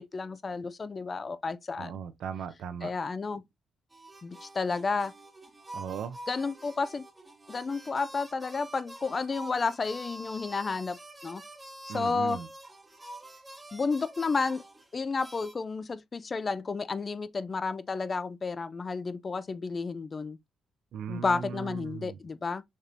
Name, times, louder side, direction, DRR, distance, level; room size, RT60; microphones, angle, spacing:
voice 1, 0.0-2.0 2.8-3.4 4.2-5.1 6.3-7.0 7.5-11.4 11.8-12.4 13.7-14.6 14.9-20.4 21.1-22.6, left 4 dB, 35° left, 0.4 m, -31 dB
voice 2, 1.8-2.9 5.7-6.2 11.9-12.5 20.9-22.2, right 7 dB, 70° right, 0.5 m, -38 dB
sound 1, 3.9-15.5, right 1 dB, 15° right, 0.9 m, -47 dB
4.1 x 3.3 x 2.5 m
cardioid pair, 90°, 0 cm